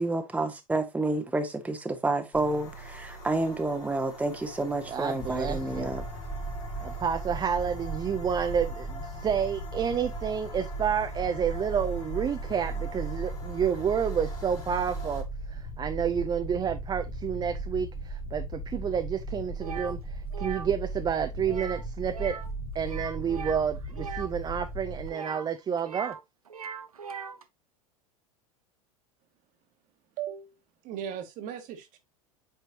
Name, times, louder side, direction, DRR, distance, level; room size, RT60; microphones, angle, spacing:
voice 1, 0.0-6.0, right 2 dB, 10° right, 1.0 m, -29 dB
sound 1, 2.3-15.2, equal, 65° left, 2.9 m, -45 dB
voice 2, 4.9-5.9 6.8-22.4 22.7-26.2, right 7 dB, 25° right, 0.6 m, -30 dB
sound 2, 5.2-25.1, right 2 dB, 30° left, 1.2 m, -37 dB
sound 3, 19.6-19.9 20.3-20.7 21.4-21.8 22.1-22.5 22.8-24.3 25.1-26.2 26.5-27.4, right 6 dB, 85° right, 0.8 m, -39 dB
voice 3, 30.2-30.5 30.8-32.0, right 9 dB, 45° right, 1.6 m, -37 dB
8.3 x 4.5 x 2.8 m
figure-of-eight pair, 85°, 18 cm